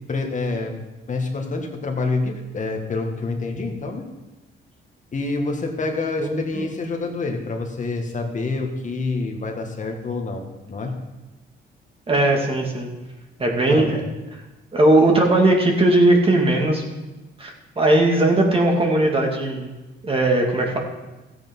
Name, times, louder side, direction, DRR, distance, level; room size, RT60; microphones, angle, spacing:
voice 1, 0.1-0.8 1.1-4.1 5.1-11.0 13.7-14.0, left 3 dB, 40° left, 2 dB, 1.8 m, -27 dB
voice 2, 6.2-6.6 12.1-12.9 13.4-14.0 14.7-16.8 17.4-19.7 20.0-20.8, right 2 dB, 30° right, 0 dB, 2.6 m, -18 dB
14.0 x 8.4 x 5.5 m, 1.1 s
cardioid pair, 90°, 20 cm